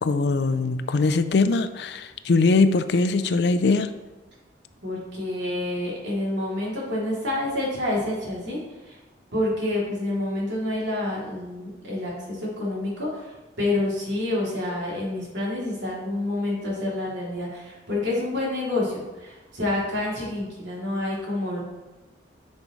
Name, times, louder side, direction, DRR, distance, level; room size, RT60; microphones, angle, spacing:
voice 1, 0.0-3.9, left 3 dB, 65° left, 11 dB, 0.4 m, -21 dB
voice 2, 4.8-9.0 9.3-21.6, left 1 dB, 75° right, -5 dB, 2.8 m, -28 dB
10.5 x 5.4 x 3.1 m, 1.1 s
head